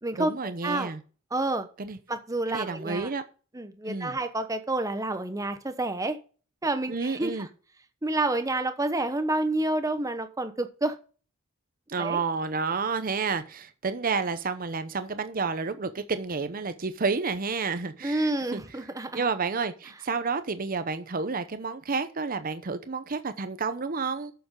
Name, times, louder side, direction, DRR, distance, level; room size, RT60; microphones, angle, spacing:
voice 1, 0.2-1.0 1.8-2.0 2.5-3.2 3.9-4.2 6.9-7.5 11.9-18.6 19.1-24.3, right 4 dB, 45° right, 0.8 m, -30 dB
voice 2, 1.3-1.7 2.1-3.1 3.5-6.2 6.6-7.5 8.0-11.0 12.0-12.2 18.0-19.2, right 2 dB, 15° right, 1.0 m, -29 dB
7.9 x 7.0 x 5.2 m
head